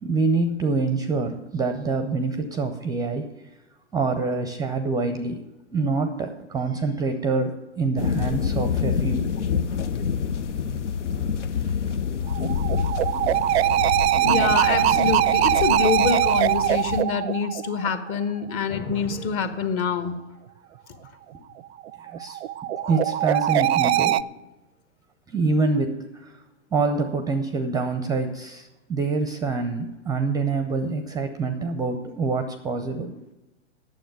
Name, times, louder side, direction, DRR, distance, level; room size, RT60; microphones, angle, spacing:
voice 1, 0.0-3.3 3.9-5.4 5.7-9.4 22.0-22.4 22.9-24.2 25.3-26.4 26.7-33.2, right 3 dB, 10° right, 9 dB, 0.5 m, -26 dB
sound 1, 8.0-17.0, left 7 dB, 80° left, 0.8 m, -27 dB
sound 2, 12.3-18.2 21.8-24.2, right 12 dB, 65° right, 0.5 m, -22 dB
voice 2, 14.2-20.2 22.7-23.1, left 6 dB, 35° left, 10 dB, 1.2 m, -26 dB
9.2 x 7.3 x 8.9 m, 1.0 s
hypercardioid pair, 120°, 35 cm